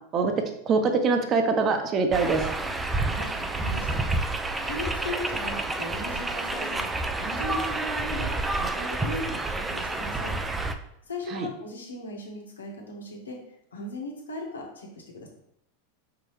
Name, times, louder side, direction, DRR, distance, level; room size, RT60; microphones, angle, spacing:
voice 1, 0.7-2.4 11.3-11.5, right 4 dB, 35° right, 6 dB, 0.9 m, -23 dB
sound 1, 2.1-10.7, right 2 dB, 15° right, 0.6 m, -29 dB
voice 2, 3.0-4.2 4.6-6.9 7.2-8.3 8.6-10.8 11.1-13.4 13.7-15.3, left 1 dB, 85° left, 0 dB, 1.6 m, -37 dB
6.1 x 4.9 x 3.2 m, 0.77 s
hypercardioid pair, 95°, 0 cm